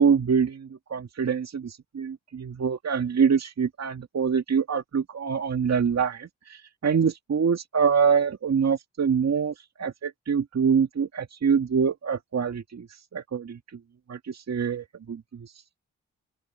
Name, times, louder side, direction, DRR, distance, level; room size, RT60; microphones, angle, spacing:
voice 1, 0.0-12.9 13.1-13.6 14.1-15.5, right 6 dB, 50° right, 2.0 m, -25 dB
open air
hypercardioid pair, 40°, 35 cm